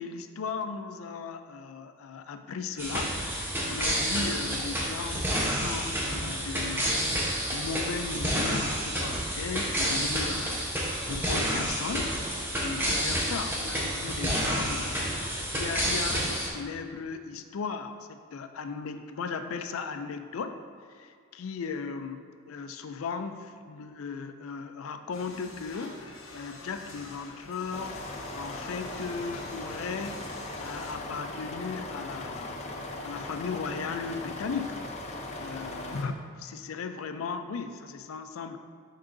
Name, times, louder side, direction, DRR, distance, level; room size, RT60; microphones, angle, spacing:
voice 1, 0.0-6.9 7.5-20.6 21.0-30.2 30.6-32.6 33.0-34.8 35.1-36.1 36.4-38.6, left 5 dB, 90° left, 8 dB, 0.4 m, -37 dB
sound 1, 2.8-16.5, equal, 10° right, 0.8 m, -29 dB
sound 2, 25.1-30.9, left 3 dB, 70° left, 0.8 m, -47 dB
sound 3, 27.7-36.1, left 2 dB, 35° left, 0.5 m, -39 dB
10.5 x 3.7 x 2.6 m, 2.1 s
head